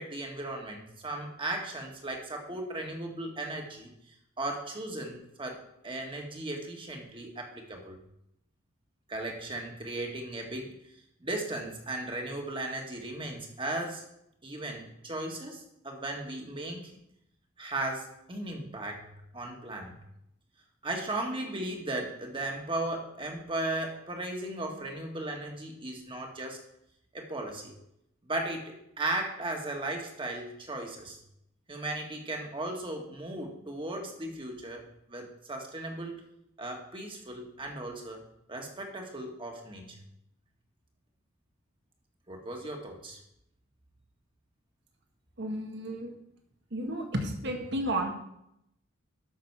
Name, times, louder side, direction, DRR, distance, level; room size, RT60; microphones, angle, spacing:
voice 1, 0.0-5.6 5.8-8.0 9.1-10.7 11.2-14.0 14.4-16.9 17.6-19.1 19.3-20.0 20.8-26.6 27.1-27.7 28.3-31.2 31.7-36.2 36.6-38.2 38.5-40.0 42.3-43.2, right 2 dB, 25° right, 2 dB, 1.7 m, -36 dB
voice 2, 45.4-46.1 46.7-48.1, right 1 dB, 60° right, 3 dB, 1.8 m, -32 dB
13.0 x 6.1 x 4.7 m, 0.79 s
head